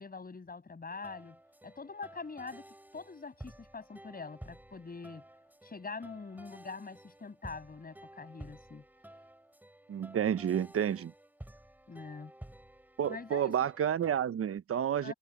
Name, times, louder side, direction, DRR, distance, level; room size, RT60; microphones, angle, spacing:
voice 1, 0.0-2.7 2.9-5.3 5.6-8.8 11.9-12.3 13.1-13.5 15.0-15.1, left 4 dB, 30° left, 7.5 m, -44 dB
sound 1, 0.9-14.2, right 1 dB, 5° right, 6.5 m, -53 dB
voice 2, 9.9-11.1 13.0-15.1, right 9 dB, 50° right, 1.0 m, -30 dB
cardioid pair, 90°, 30 cm